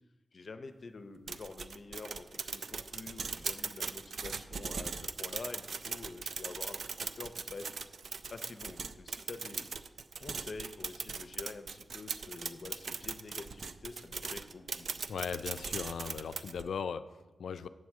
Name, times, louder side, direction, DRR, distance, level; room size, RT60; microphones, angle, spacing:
voice 1, 0.3-7.7 8.3-9.7 10.2-14.9, left 3 dB, 50° left, 9 dB, 0.6 m, -47 dB
Typing on Typewriter, 1.3-16.7, right 5 dB, 65° right, 0.4 m, -40 dB
voice 2, 15.1-17.7, left 6 dB, 90° left, 12 dB, 0.3 m, -38 dB
8.1 x 4.7 x 7.2 m, 1.2 s
wide cardioid pair, 125°, 0 cm